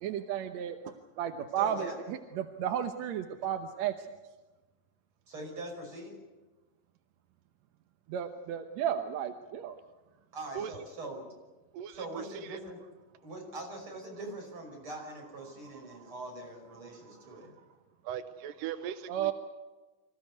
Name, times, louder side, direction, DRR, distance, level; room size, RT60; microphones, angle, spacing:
voice 1, 0.0-3.9 8.1-9.8 19.1-19.3, right 9 dB, 65° right, 6 dB, 2.0 m, -33 dB
voice 2, 1.6-2.0 5.3-6.1 10.3-11.3 11.9-12.8 13.2-17.5, right 2 dB, 40° right, 0 dB, 6.4 m, -42 dB
voice 3, 11.7-12.1 12.5-12.6 18.0-19.3, right 9 dB, 90° right, 10 dB, 2.6 m, -38 dB
26.0 x 15.0 x 9.5 m, 1.2 s
omnidirectional pair, 3.8 m